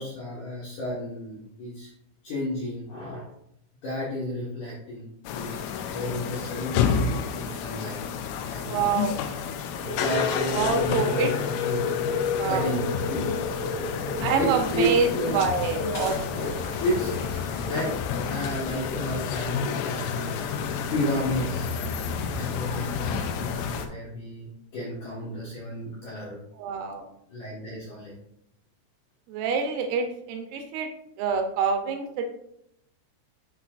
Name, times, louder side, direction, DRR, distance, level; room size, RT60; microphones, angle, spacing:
voice 1, 0.0-1.9 2.2-3.3 3.8-8.0 8.5-9.0 9.9-12.0 12.5-13.3 14.0-15.4 15.9-16.1 16.8-17.2 17.7-17.9 18.3-21.7 22.3-24.5 24.7-26.4 27.3-28.1, equal, 60° left, -8 dB, 2.2 m, -32 dB
sound 1, 5.3-23.9, left 6 dB, 85° left, 3.1 m, -30 dB
voice 2, 8.6-9.2 10.5-11.3 12.4-12.7 14.2-15.1 15.3-16.2 16.6-16.7 26.6-27.0 29.3-30.9 31.2-32.2, right 5 dB, 80° right, 4 dB, 3.3 m, -26 dB
sound 2, 9.8-11.3 11.8-14.6 15.1-15.4 15.8-16.1 16.4-16.7 17.0-17.3 17.7-17.9, left 1 dB, 30° right, 1.0 m, -34 dB
sound 3, 14.6-15.6 15.9-18.5 19.0-19.1 19.3-19.4 20.6-21.0 21.4-22.1 23.2-23.8, left 1 dB, 30° left, 1.1 m, -40 dB
11.5 x 4.3 x 2.5 m, 0.76 s
omnidirectional pair, 5.8 m